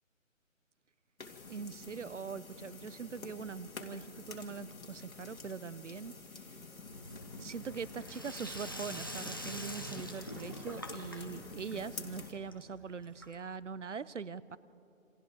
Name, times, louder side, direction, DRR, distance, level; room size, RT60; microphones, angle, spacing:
sound 1, 1.2-12.3, left 4 dB, 85° left, 2.5 m, -49 dB
voice 1, 1.5-6.2 6.4-6.5 7.4-14.6, right 5 dB, 60° right, 18 dB, 0.8 m, -42 dB
Sink (filling or washing), 6.9-13.7, equal, 15° left, 0.7 m, -46 dB
28.5 x 25.5 x 4.9 m, 2.6 s
figure-of-eight pair, 170°, 40 cm